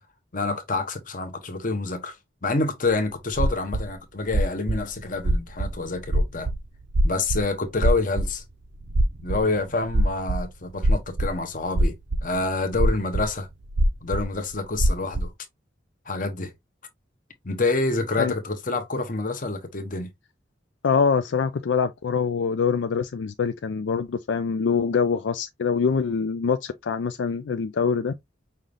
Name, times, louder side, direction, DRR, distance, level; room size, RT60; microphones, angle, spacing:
voice 1, 0.3-2.2 2.4-6.5 7.0-8.4 9.2-12.0 12.2-13.5 14.0-15.3 16.1-16.5 17.4-20.1, left 3 dB, 45° left, 1.0 m, -27 dB
sound 1, 2.9-3.0 3.3-3.9 4.3-6.6 6.9-7.5 7.8-8.3 8.8-10.4 10.7-11.4 11.6-12.4 12.7-13.3 13.7-14.3 14.5-15.3, right 1 dB, 70° right, 0.7 m, -22 dB
voice 2, 20.8-28.1, left 5 dB, 70° left, 0.4 m, -24 dB
5.6 x 2.5 x 3.3 m
head